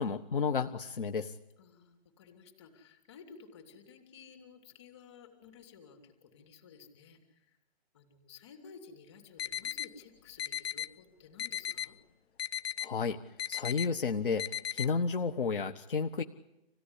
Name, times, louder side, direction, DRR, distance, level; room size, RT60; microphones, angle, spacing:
voice 1, 0.0-1.3 12.8-16.2, left 5 dB, 60° left, 6 dB, 1.3 m, -32 dB
voice 2, 1.6-7.6 7.9-12.0, left 6 dB, 25° left, 5 dB, 3.2 m, -54 dB
sound 1, 9.4-9.9 10.4-10.9 11.4-11.9 12.4-12.9 13.4-13.9 14.4-14.9, left 9 dB, 75° left, 1.0 m, -35 dB
27.0 x 17.0 x 10.0 m, 0.93 s
hypercardioid pair, 170°, 31 cm